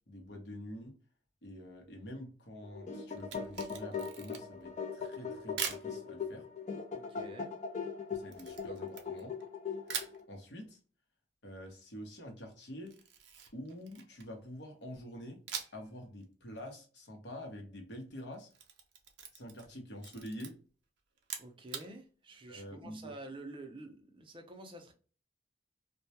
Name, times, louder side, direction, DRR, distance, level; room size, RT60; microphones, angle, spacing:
voice 1, 0.1-0.9 1.4-6.5 8.1-9.3 10.3-10.8 11.4-12.9 13.5-15.4 15.7-18.5 19.3-20.5 22.5-23.1, equal, 70° left, 3 dB, 0.8 m, -46 dB
sound 1, 2.6-10.2, left 5 dB, 40° left, 0.4 m, -40 dB
Camera, 3.2-4.6 5.6-5.9 8.3-9.5 9.9-10.2 12.9-14.4 15.5-15.9 16.2-16.3 18.3-19.7 20.0-20.5 21.2-21.9, right 7 dB, 80° right, 0.5 m, -42 dB
voice 2, 6.9-7.5 21.4-24.9, right 2 dB, 30° right, 5 dB, 0.4 m, -48 dB
2.2 x 2.1 x 2.7 m, 0.38 s
head